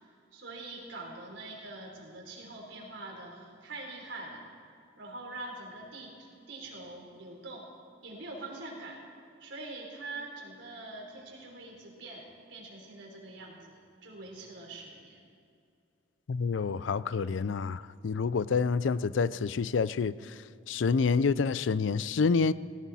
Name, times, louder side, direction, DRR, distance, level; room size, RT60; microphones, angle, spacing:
voice 1, 0.3-4.5 5.0-7.7 8.0-9.0 9.4-15.2, right 2 dB, 85° right, 3.8 m, -44 dB
voice 2, 16.3-20.3 20.7-22.5, left 5 dB, 90° left, 0.4 m, -28 dB
18.0 x 17.0 x 4.2 m
head